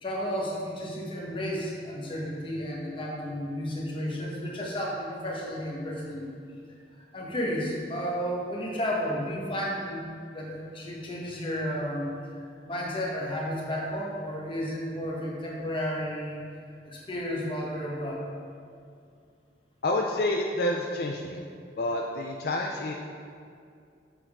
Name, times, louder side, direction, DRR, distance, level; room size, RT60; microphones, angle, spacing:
voice 1, 0.0-6.3 7.1-10.0 10.3-16.4 16.8-18.2, equal, 30° left, -3 dB, 1.3 m, -32 dB
voice 2, 19.8-21.5 21.8-22.9, left 1 dB, 60° left, 1 dB, 0.4 m, -28 dB
6.9 x 6.9 x 3.6 m, 2.4 s
head